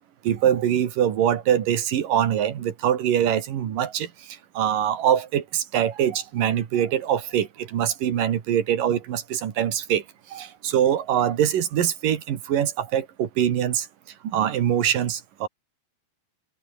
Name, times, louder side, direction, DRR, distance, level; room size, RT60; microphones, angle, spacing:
voice 1, 0.2-10.0 10.3-13.9 14.2-15.5, right 10 dB, 60° right, 3.3 m, -23 dB
omnidirectional pair, 4.7 m